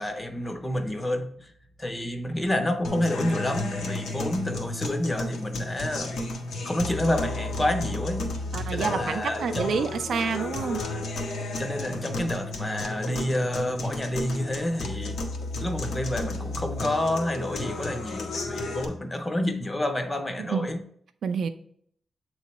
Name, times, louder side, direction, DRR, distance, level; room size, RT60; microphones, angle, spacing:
voice 1, 0.0-1.5 1.8-6.2 6.6-8.4 8.7-9.8 11.6-15.2 15.6-20.8, left 1 dB, 15° left, 0.6 m, -29 dB
sound 1, 2.8-18.8, left 2 dB, 90° left, 1.0 m, -33 dB
voice 2, 8.5-10.8 20.4-20.7 21.2-21.5, right 6 dB, 75° right, 0.5 m, -28 dB
7.4 x 3.1 x 4.1 m
wide cardioid pair, 170°, 0 cm